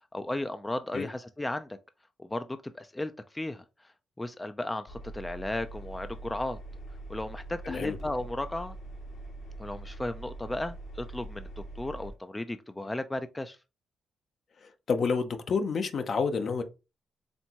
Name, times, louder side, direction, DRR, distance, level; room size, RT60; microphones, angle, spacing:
voice 1, 0.1-1.7 2.2-2.5 2.7-3.6 4.2-6.6 7.1-8.8 9.6-13.6, left 1 dB, 15° left, 0.4 m, -35 dB
Engine, 4.9-12.1, right 2 dB, 75° left, 1.5 m, -43 dB
voice 2, 7.6-8.0 14.6-16.6, left 5 dB, 55° left, 0.7 m, -29 dB
4.3 x 3.4 x 3.0 m
cardioid pair, 70°, 0 cm